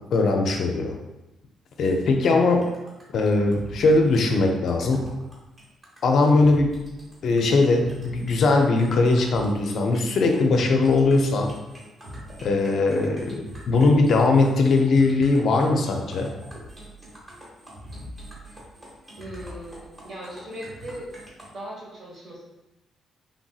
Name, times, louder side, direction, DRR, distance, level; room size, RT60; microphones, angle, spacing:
voice 1, 0.1-0.9 1.8-2.7 3.1-5.1 6.0-6.7 7.2-11.5 12.4-13.4 13.7-16.3, left 3 dB, 65° left, 3 dB, 0.4 m, -20 dB
sound 1, 2.6-21.5, equal, 25° right, 1.1 m, -44 dB
voice 2, 19.2-21.1 21.5-22.5, right 1 dB, 60° right, -5 dB, 1.3 m, -38 dB
3.3 x 2.6 x 2.3 m, 1.0 s
cardioid pair, 90°, 0 cm